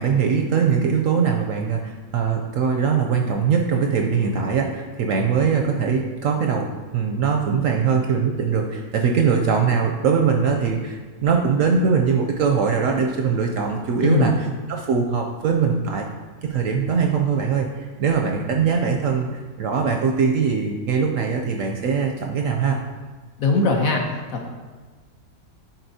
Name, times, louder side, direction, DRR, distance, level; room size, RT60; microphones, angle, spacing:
voice 1, 0.0-6.7 6.9-14.3 14.7-16.0 16.4-19.3 19.6-22.8, right 6 dB, 70° right, 2 dB, 0.8 m, -21 dB
voice 2, 14.0-14.3 23.4-24.0 24.3-24.5, left 2 dB, 65° left, 2 dB, 1.1 m, -19 dB
10.0 x 4.1 x 2.7 m, 1.4 s
omnidirectional pair, 1.7 m